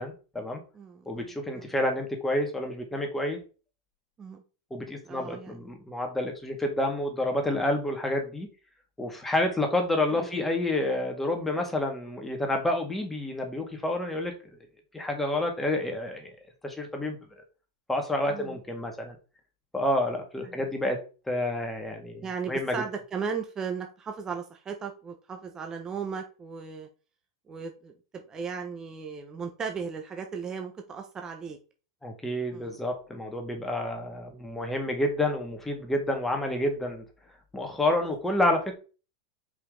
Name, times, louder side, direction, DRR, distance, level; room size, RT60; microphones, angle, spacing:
voice 1, 0.0-0.6 1.1-3.4 4.7-8.5 9.0-14.3 14.9-16.3 16.6-17.4 17.9-19.2 19.7-21.0 21.3-22.8 32.0-37.0 37.5-38.7, left 1 dB, 5° left, 2 dB, 2.0 m, -29 dB
voice 2, 0.7-1.2 1.5-1.6 4.2-4.4 5.0-5.6 10.1-10.4 18.3-18.6 20.4-20.6 22.2-26.9 27.5-31.6 32.5-32.8, right 6 dB, 25° right, 5 dB, 1.0 m, -36 dB
5.6 x 5.2 x 3.8 m, 0.34 s
hypercardioid pair, 115°, 3 cm